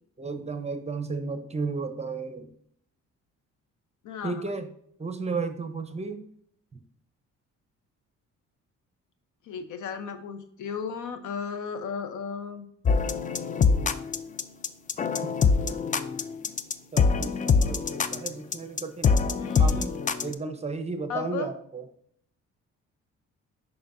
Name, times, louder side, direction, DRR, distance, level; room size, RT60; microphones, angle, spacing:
voice 1, 0.2-2.5 4.2-4.7 5.0-6.2 16.9-19.2 19.6-19.9 20.2-21.8, right 4 dB, 20° right, 8 dB, 0.7 m, -33 dB
voice 2, 4.0-4.5 9.4-12.7 19.4-19.9 21.1-21.5, left 6 dB, 75° left, 9 dB, 0.8 m, -35 dB
sound 1, 12.9-20.3, left 5 dB, 25° left, 0.4 m, -24 dB
6.8 x 5.4 x 2.6 m, 0.66 s
cardioid pair, 90°, 30 cm